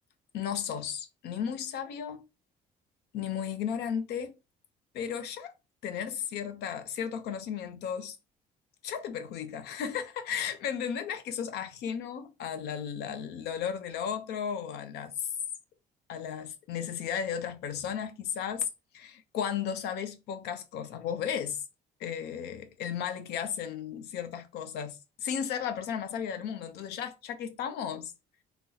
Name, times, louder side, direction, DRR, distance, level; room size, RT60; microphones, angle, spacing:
voice 1, 0.3-2.2 3.1-4.4 4.9-5.5 5.8-8.2 8.8-15.3 16.1-18.7 18.9-21.6 22.0-28.1, left 8 dB, 75° left, 0.6 m, -34 dB
2.7 x 2.1 x 3.8 m
cardioid pair, 110°, 17 cm